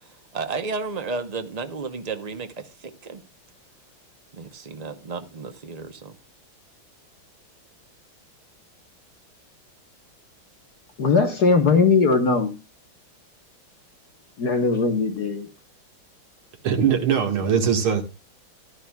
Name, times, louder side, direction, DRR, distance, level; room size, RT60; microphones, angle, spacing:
voice 1, 0.0-3.2 4.3-6.2, right 4 dB, 55° right, 0.4 m, -33 dB
voice 2, 11.0-12.5 14.4-15.5, left 4 dB, 50° left, 1.8 m, -19 dB
voice 3, 16.6-18.0, right 7 dB, 80° right, 2.7 m, -21 dB
14.5 x 11.0 x 2.3 m
omnidirectional pair, 2.3 m